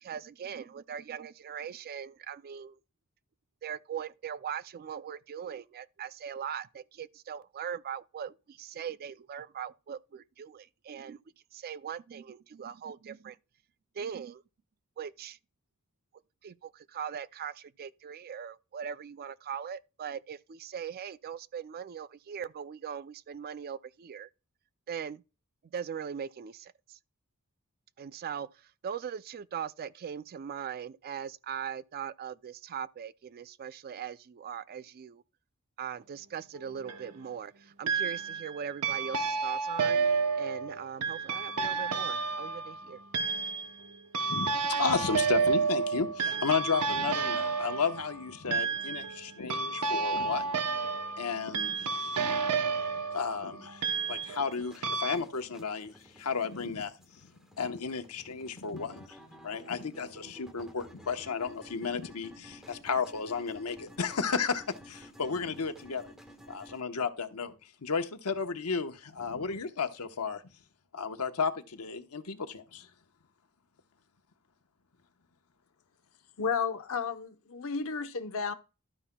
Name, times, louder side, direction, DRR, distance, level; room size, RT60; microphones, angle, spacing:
voice 1, 0.0-2.8 3.6-11.2 11.5-13.4 14.0-14.4 15.0-15.4 16.4-24.3 24.9-25.2 25.7-27.0 28.0-28.5 28.8-35.2 35.8-40.0 40.4-43.0, right 8 dB, 45° right, 0.3 m, -40 dB
sound 1, 36.5-37.1 37.9-38.5 38.8-54.5 54.8-55.2, right 5 dB, 85° right, 0.8 m, -31 dB
voice 2, 44.3-50.6 51.2-52.3 53.1-56.9 57.2-57.3 57.6-59.2 59.4-66.1 66.5-67.5 67.8-70.4 70.9-72.9, left 5 dB, 80° left, 1.0 m, -33 dB
sound 2, 54.2-66.8, equal, ahead, 1.3 m, -53 dB
voice 3, 76.4-78.5, left 5 dB, 65° left, 0.8 m, -32 dB
12.0 x 9.7 x 2.2 m
head